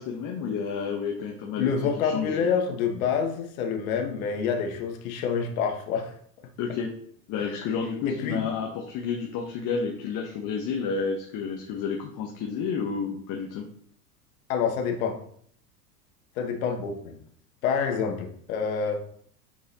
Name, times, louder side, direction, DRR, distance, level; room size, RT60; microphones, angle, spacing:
voice 1, 0.0-1.7 2.0-2.4 6.6-6.9 7.3-13.6, left 6 dB, 40° left, 0 dB, 1.3 m, -30 dB
voice 2, 1.6-6.1 7.5-7.6 8.0-8.4 14.5-15.2 16.3-17.2 17.6-19.1, left 6 dB, 60° left, 4 dB, 1.6 m, -27 dB
8.6 x 4.6 x 3.0 m, 0.62 s
hypercardioid pair, 90°, 47 cm